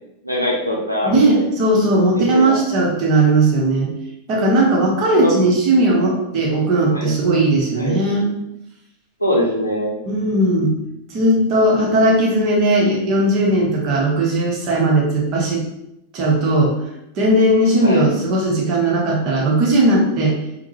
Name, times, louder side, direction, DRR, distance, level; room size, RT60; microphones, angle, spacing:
voice 1, 0.2-1.5 2.1-2.6 5.1-5.3 6.0-6.1 6.9-7.1 7.8-8.0 9.2-10.0 17.8-18.1, equal, 90° left, -2 dB, 0.5 m, -22 dB
voice 2, 1.0-3.9 4.3-8.3 10.1-10.8 11.1-15.6 16.1-16.8 17.2-20.4, right 1 dB, 40° right, -2 dB, 0.9 m, -17 dB
3.6 x 2.1 x 2.8 m, 0.84 s
figure-of-eight pair, 90°, 0 cm